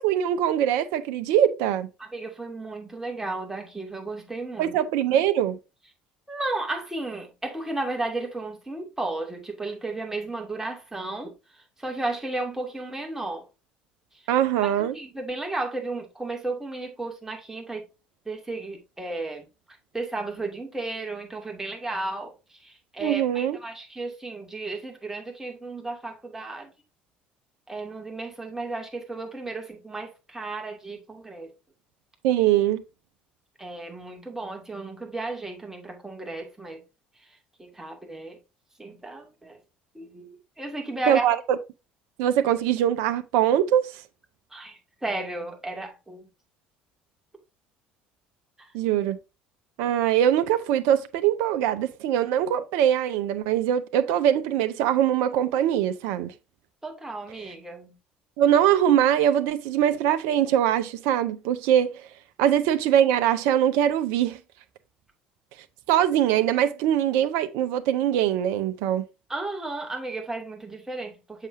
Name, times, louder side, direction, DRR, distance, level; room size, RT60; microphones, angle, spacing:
voice 1, 0.0-1.9 4.6-5.6 14.3-14.9 23.0-23.6 32.2-32.8 41.1-41.4 42.2-43.9 48.7-49.2 49.8-56.3 58.4-61.9 62.4-64.4 65.9-69.1, right 10 dB, 65° right, 0.6 m, -22 dB
voice 2, 2.0-4.8 6.3-13.4 14.1-14.3 14.6-17.9 18.3-19.5 19.9-26.7 27.7-31.5 33.6-36.8 37.2-38.4 38.8-39.6 39.9-41.2 44.5-46.3 48.6-48.7 56.8-58.0 69.3-71.5, right 2 dB, 10° right, 2.4 m, -34 dB
7.0 x 5.8 x 2.7 m
figure-of-eight pair, 60°, 5 cm